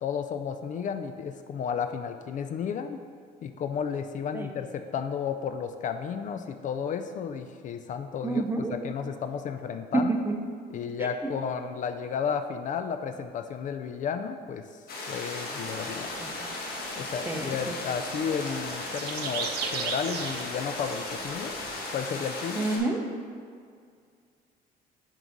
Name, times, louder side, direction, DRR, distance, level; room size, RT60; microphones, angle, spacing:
voice 1, 0.0-3.0 3.4-8.4 8.7-10.1 10.7-14.8 15.1-16.1 17.0-21.6 21.9-22.7, left 7 dB, 50° left, 8 dB, 0.4 m, -33 dB
voice 2, 8.2-8.8 9.9-10.3 11.0-11.3 16.2-16.5 17.3-17.7 22.6-23.0, right 2 dB, 15° right, 3 dB, 0.7 m, -29 dB
sound 1, 14.9-22.8, left 2 dB, 65° left, 1.2 m, -36 dB
sound 2, 15.6-21.9, right 6 dB, 70° right, 0.7 m, -39 dB
6.0 x 4.7 x 5.2 m, 2.2 s
cardioid pair, 110°, 17 cm